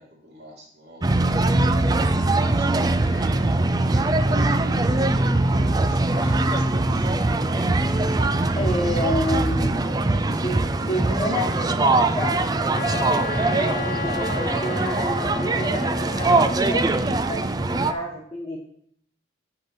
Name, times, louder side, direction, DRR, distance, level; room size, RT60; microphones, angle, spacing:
voice 1, 0.0-1.6 2.1-3.4 3.8-7.8, right 1 dB, 65° right, -2 dB, 3.0 m, -45 dB
sound 1, 1.0-17.9, right 2 dB, 20° right, 0.4 m, -22 dB
voice 2, 8.5-18.6, equal, 25° left, -3 dB, 1.3 m, -30 dB
Wind instrument woodwind instrument, 12.7-16.6, left 5 dB, 50° left, 0.5 m, -32 dB
10.5 x 3.7 x 6.8 m, 0.67 s
head